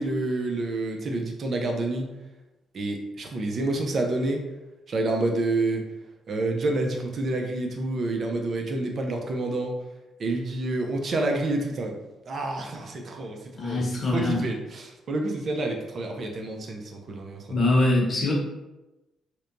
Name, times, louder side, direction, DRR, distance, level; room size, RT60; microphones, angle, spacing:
voice 1, 0.0-2.1 2.7-4.4 4.9-5.9 6.3-9.7 10.2-12.0 12.3-17.6, right 2 dB, 50° right, 2 dB, 0.4 m, -28 dB
voice 2, 13.5-14.4 17.5-18.3, left 2 dB, 45° left, -3 dB, 0.9 m, -23 dB
2.8 x 2.1 x 2.5 m, 1.0 s
cardioid pair, 90°, 0 cm